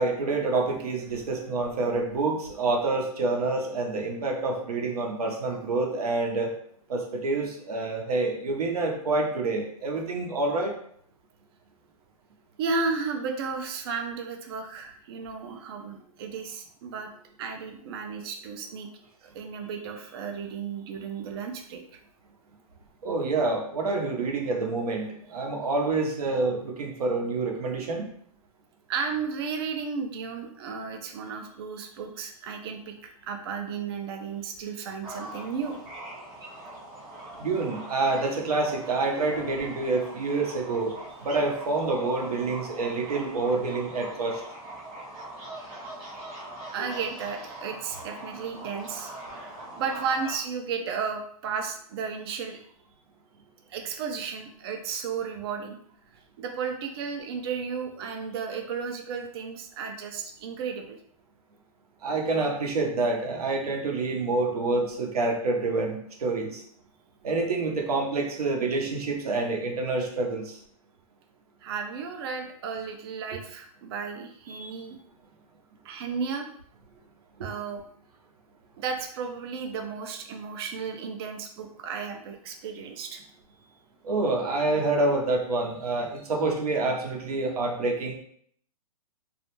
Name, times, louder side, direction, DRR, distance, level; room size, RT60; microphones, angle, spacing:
voice 1, 0.0-6.5 6.9-10.7 23.0-28.1 37.4-40.9 41.2-44.4 46.8-46.9 62.0-66.6 67.2-70.6 74.5-74.8 84.0-88.1, right 3 dB, 85° right, 1 dB, 0.7 m, -27 dB
voice 2, 12.6-17.1 17.4-18.9 19.3-21.8 28.9-32.9 33.3-35.8 46.7-49.1 49.4-52.6 53.7-55.8 56.4-61.0 71.6-75.0 75.8-76.5 77.4-77.8 78.8-83.2 83.6-83.7, right 5 dB, 40° right, 4 dB, 0.4 m, -33 dB
sound 1, 35.0-50.4, right 1 dB, 20° right, 0.9 m, -42 dB
2.3 x 2.2 x 2.9 m, 0.64 s
hypercardioid pair, 145°, 19 cm